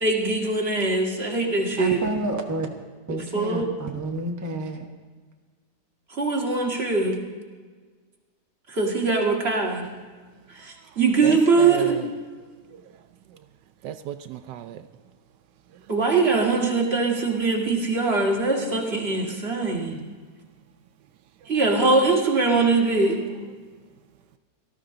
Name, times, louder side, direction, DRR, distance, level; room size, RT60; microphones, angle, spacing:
voice 1, 0.0-2.0 3.1-3.7 6.1-7.2 8.7-9.8 10.5-12.0 15.9-20.0 21.5-23.2, right 3 dB, 35° right, -1 dB, 2.2 m, -22 dB
voice 2, 1.8-2.7 3.1-4.9, right 2 dB, 15° right, 2 dB, 0.9 m, -29 dB
voice 3, 11.2-12.1 12.7-12.8 13.8-14.8, right 11 dB, 85° right, 10 dB, 1.2 m, -34 dB
18.5 x 13.0 x 3.8 m, 1.5 s
omnidirectional pair, 1.8 m